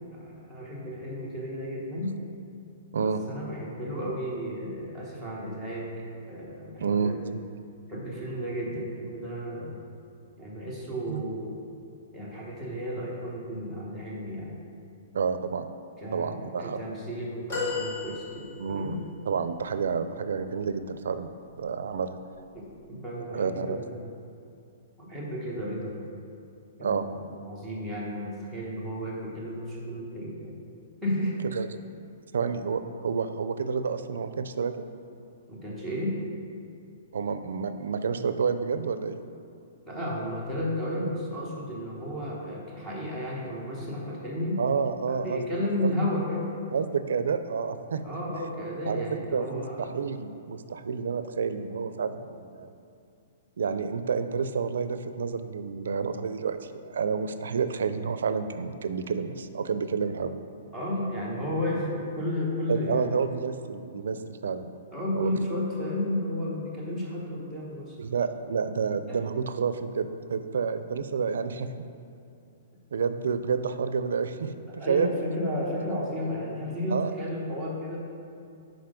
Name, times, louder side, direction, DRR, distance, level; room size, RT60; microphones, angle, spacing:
voice 1, 0.1-2.2 2.9-7.4 7.9-9.8 10.4-11.5 12.1-14.5 16.0-19.0 22.5-24.1 25.0-26.0 26.8-27.1 27.4-30.6 31.0-31.4 35.5-36.2 39.9-44.6 45.1-46.5 48.0-50.0 60.7-63.2 64.9-67.9 69.1-69.2 74.7-78.0, left 1 dB, 5° left, -6 dB, 1.0 m, -33 dB
voice 2, 6.8-7.1 11.1-11.2 15.1-15.7 16.1-16.9 18.6-19.0 19.3-21.3 21.6-22.2 23.3-23.8 26.8-27.1 31.4-31.7 32.3-34.9 37.1-39.2 44.6-45.4 45.8-45.9 46.7-48.0 48.9-52.7 53.6-60.3 62.7-64.7 65.1-65.3 68.0-71.7 72.9-75.1 76.9-77.1, right 5 dB, 85° right, 10 dB, 0.4 m, -29 dB
sound 1, 17.5-18.9 19.6-19.7, left 4 dB, 35° left, 1.6 m, -33 dB
5.9 x 5.0 x 5.1 m, 2.5 s
hypercardioid pair, 175°, 0 cm